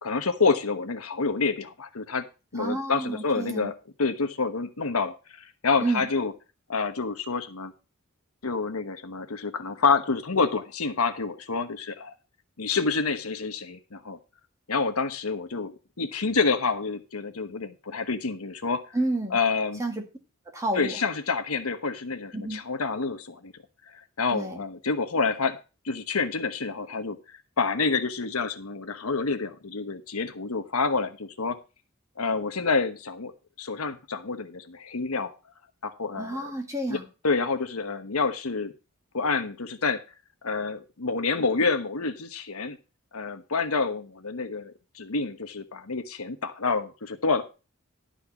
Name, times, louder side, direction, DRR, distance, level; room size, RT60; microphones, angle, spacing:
voice 1, 0.0-2.3 2.5-3.7 4.0-5.1 5.6-6.3 6.7-7.7 8.4-12.1 12.6-14.2 14.7-15.7 16.0-18.8 19.3-19.8 20.7-23.5 24.2-25.6 25.8-27.2 27.6-31.6 32.2-33.3 33.6-35.3 35.8-36.5 36.9-37.0 37.2-38.7 39.1-40.0 40.4-42.8 43.1-47.4, left 4 dB, 80° left, 8 dB, 1.2 m, -28 dB
voice 2, 2.6-3.7 5.8-6.1 18.9-19.4 19.8-20.0 20.5-21.0 22.3-22.6 24.3-24.6 36.2-37.1, right 2 dB, 15° right, 2 dB, 2.1 m, -30 dB
11.5 x 4.5 x 7.1 m, 0.31 s
head